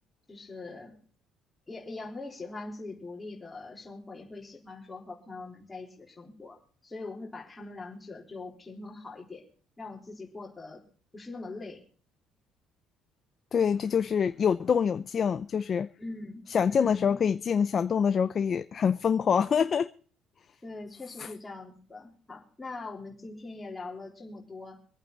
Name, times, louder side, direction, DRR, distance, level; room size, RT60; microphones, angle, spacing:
voice 1, 0.3-0.9 1.7-9.5 9.8-10.8 11.1-11.8 16.0-16.4 20.6-24.8, left 3 dB, 10° left, 3.9 m, -42 dB
voice 2, 13.5-15.9 16.5-19.9 21.2-21.3, left 7 dB, 30° left, 0.6 m, -25 dB
25.5 x 8.9 x 4.0 m
cardioid pair, 170°, 0 cm